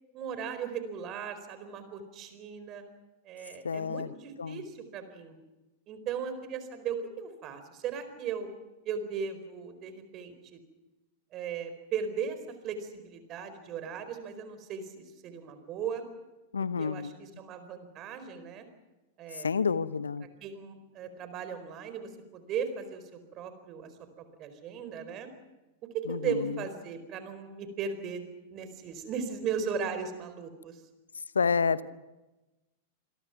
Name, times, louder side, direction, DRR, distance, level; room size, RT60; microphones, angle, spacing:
voice 1, 0.1-2.8 3.2-5.4 5.9-8.5 8.8-10.6 11.3-12.4 12.6-16.0 16.8-18.6 19.2-19.5 20.4-23.9 24.2-25.3 26.1-28.3 28.5-30.8, right 6 dB, 35° right, 10 dB, 4.4 m, -37 dB
voice 2, 3.6-4.1 4.4-4.6 16.5-17.1 19.4-20.3 26.1-26.5 31.3-31.9, left 5 dB, 80° left, 17 dB, 0.8 m, -29 dB
27.5 x 22.0 x 6.0 m, 1.1 s
figure-of-eight pair, 95°, 0 cm